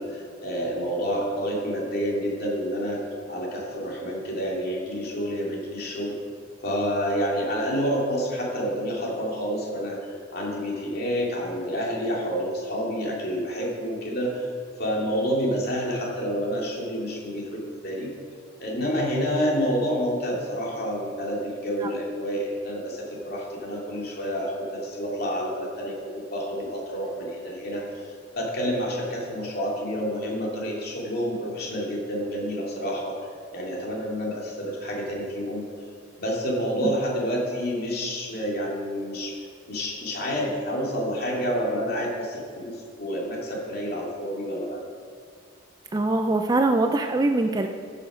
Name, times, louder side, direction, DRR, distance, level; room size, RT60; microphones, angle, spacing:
voice 1, 0.0-6.1 6.6-14.5 14.8-18.1 18.6-33.2 33.5-35.6 36.2-39.3 39.7-44.9, equal, 50° left, -3 dB, 2.7 m, -29 dB
voice 2, 45.9-47.7, right 2 dB, 20° right, 5 dB, 0.4 m, -23 dB
14.0 x 7.0 x 5.1 m, 2.2 s
head